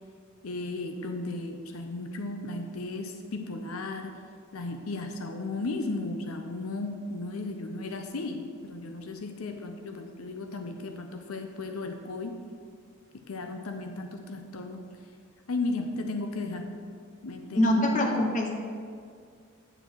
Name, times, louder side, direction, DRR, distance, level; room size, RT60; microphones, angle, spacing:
voice 1, 0.4-4.1 4.5-12.4 13.3-14.8 15.5-16.7 17.2-17.9, left 2 dB, 85° left, 5 dB, 0.7 m, -35 dB
voice 2, 17.5-18.5, left 1 dB, 40° left, 2 dB, 1.1 m, -24 dB
8.9 x 6.6 x 4.7 m, 2.1 s
head